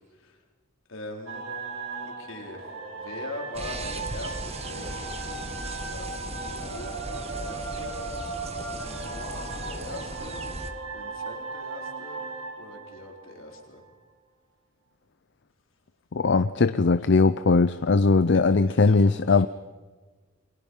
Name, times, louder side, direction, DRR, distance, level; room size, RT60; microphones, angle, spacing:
voice 1, 0.9-1.4 2.0-2.7 2.9-8.0 8.8-10.5 10.9-12.2 12.6-13.8 16.4-17.0 18.3-19.5, left 2 dB, 80° left, 1 dB, 4.2 m, -42 dB
sound 1, 1.3-13.8, right 3 dB, 90° right, 5.5 m, -37 dB
sound 2, 3.5-10.7, right 2 dB, 30° right, 1.8 m, -37 dB
voice 2, 16.1-19.5, left 4 dB, 60° left, 12 dB, 0.6 m, -20 dB
29.5 x 24.0 x 5.6 m, 1.4 s
head